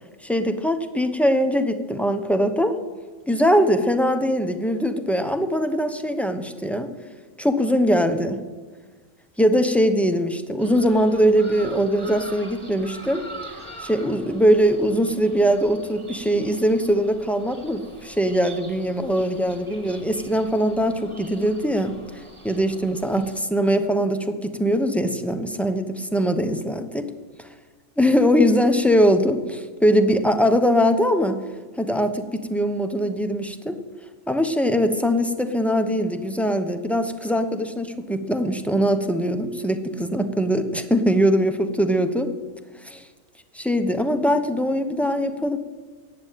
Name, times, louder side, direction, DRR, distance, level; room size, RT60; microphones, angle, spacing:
voice 1, 0.2-2.8 3.3-6.9 7.4-8.4 9.4-13.3 13.8-27.1 28.0-31.4 31.8-33.8 34.3-42.3 42.8-43.0 43.5-45.6, equal, ahead, 8 dB, 0.7 m, -21 dB
sound 1, 10.6-23.4, right 2 dB, 20° right, 2.0 m, -44 dB
15.0 x 8.8 x 9.2 m, 1.4 s
omnidirectional pair, 1.4 m